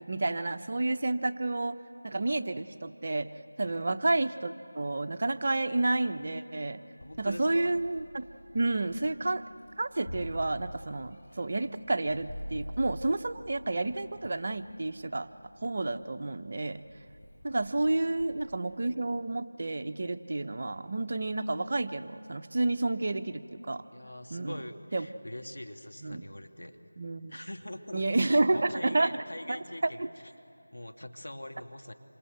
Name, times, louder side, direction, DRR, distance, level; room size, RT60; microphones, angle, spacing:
voice 1, 0.0-3.3 3.6-6.8 7.2-8.2 8.5-9.4 9.8-15.3 15.6-16.8 17.4-23.8 24.3-24.6 24.9-25.1 26.0-26.2 27.0-27.3 27.9-29.2 29.5-30.1, right 2 dB, 45° right, 10 dB, 0.9 m, -30 dB
voice 2, 7.0-7.7 23.9-26.8 27.3-30.0 30.7-31.9, left 1 dB, 75° left, 6 dB, 2.2 m, -43 dB
Meow, 7.0-18.3, equal, 35° left, 7.9 m, -47 dB
27.0 x 25.5 x 8.0 m, 2.7 s
figure-of-eight pair, 170°, 0 cm